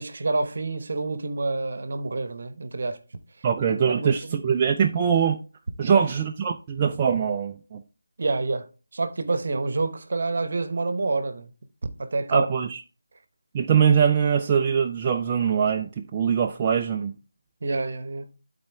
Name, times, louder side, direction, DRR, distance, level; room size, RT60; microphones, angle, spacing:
voice 1, 0.0-3.0 3.9-4.4 5.8-6.1 8.2-8.7 8.9-11.5 12.0-12.5 17.6-18.3, right 3 dB, 50° right, 1.0 m, -28 dB
voice 2, 3.4-5.4 5.8-7.8 12.3-12.8 13.5-17.1, right 7 dB, 20° right, 0.4 m, -22 dB
12.0 x 4.2 x 3.4 m
figure-of-eight pair, 165°, 0 cm